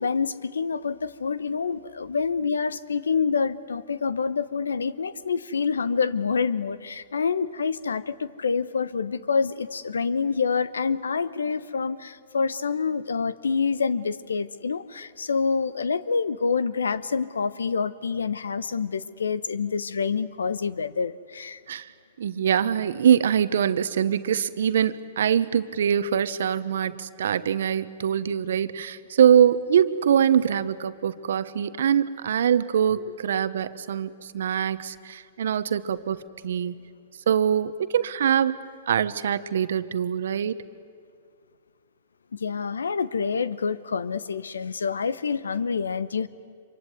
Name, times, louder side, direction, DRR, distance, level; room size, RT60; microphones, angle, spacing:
voice 1, 0.0-21.6 42.3-46.3, left 5 dB, 90° left, 17 dB, 0.9 m, -27 dB
voice 2, 22.2-36.7 37.3-40.6, right 8 dB, 75° right, 14 dB, 1.1 m, -23 dB
26.0 x 24.0 x 9.4 m, 2.2 s
hypercardioid pair, 120°, 0 cm